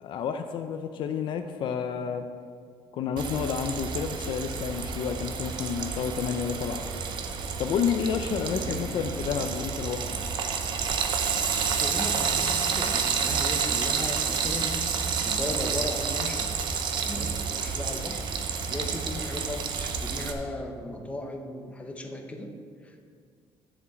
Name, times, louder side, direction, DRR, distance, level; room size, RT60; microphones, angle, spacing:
voice 1, 0.0-2.3 2.9-6.8 7.6-10.2, left 7 dB, 55° left, 7 dB, 0.5 m, -30 dB
Frying (food), 3.2-20.3, right 6 dB, 50° right, 0.8 m, -29 dB
voice 2, 8.4-9.2 11.7-16.5 17.0-18.2 18.7-22.5 22.8-23.0, left 1 dB, 15° left, 3 dB, 0.8 m, -36 dB
7.2 x 6.9 x 7.4 m, 2.1 s
cardioid pair, 175°, 10 cm